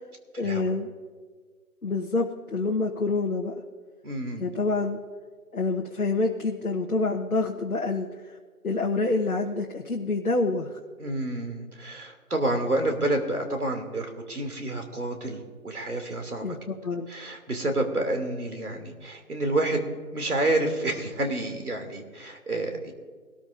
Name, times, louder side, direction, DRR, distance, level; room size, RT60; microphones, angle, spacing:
voice 1, 0.4-0.9 1.8-3.6 4.4-5.0 5.5-8.3 8.6-10.8 16.4-17.1, left 3 dB, 65° left, 1 dB, 1.2 m, -27 dB
voice 2, 4.0-4.4 11.0-16.4 17.1-19.9 20.1-22.9, right 2 dB, 75° right, 3 dB, 2.7 m, -29 dB
22.0 x 13.5 x 2.6 m, 1.6 s
figure-of-eight pair, 175°, 45 cm